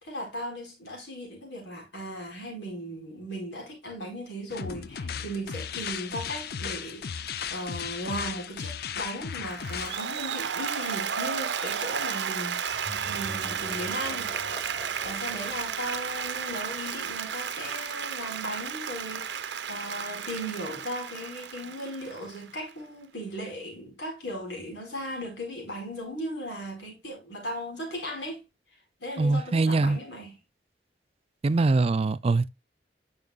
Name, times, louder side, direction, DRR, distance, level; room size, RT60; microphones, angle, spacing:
voice 1, 0.0-7.2 7.5-14.3 15.0-28.4 29.0-30.4, equal, 90° left, 4.8 m, -37 dB
sound 1, 4.5-10.0, left 7 dB, 60° left, 0.5 m, -36 dB
Applause, 9.5-22.7, right 7 dB, 80° right, 0.7 m, -33 dB
sound 2, 12.7-17.2, equal, 10° left, 2.2 m, -45 dB
voice 2, 29.2-30.0 31.4-32.5, right 3 dB, 35° right, 0.4 m, -23 dB
10.5 x 6.3 x 2.4 m
head